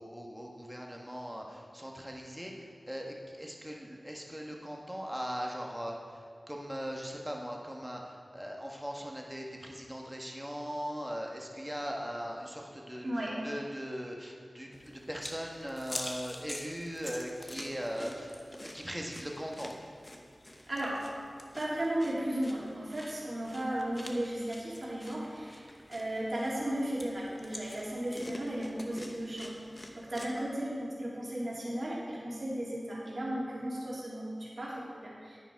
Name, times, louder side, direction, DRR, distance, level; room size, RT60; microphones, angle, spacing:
voice 1, 0.0-19.7, equal, 5° right, 0 dB, 1.4 m, -40 dB
sound 1, 14.7-30.3, left 1 dB, 25° left, 1.1 m, -46 dB
voice 2, 20.7-21.0 21.6-29.6 29.9-35.4, right 1 dB, 50° right, -6 dB, 3.0 m, -35 dB
10.5 x 9.2 x 4.7 m, 2.1 s
wide cardioid pair, 85°, 0 cm